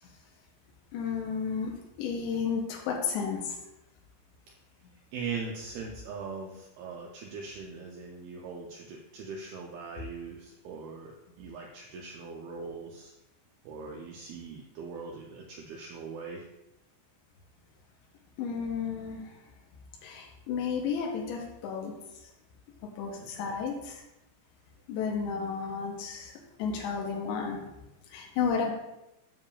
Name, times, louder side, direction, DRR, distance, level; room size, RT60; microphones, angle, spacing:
voice 1, 0.9-3.6 18.4-19.4 20.0-21.9 23.0-24.0 24.9-26.3 26.6-27.7 28.1-28.7, left 6 dB, 90° left, 0 dB, 3.1 m, -32 dB
voice 2, 5.1-13.1 13.6-16.4 23.2-23.6, right 5 dB, 80° right, 0 dB, 2.3 m, -41 dB
9.5 x 6.9 x 2.4 m, 0.91 s
omnidirectional pair, 5.0 m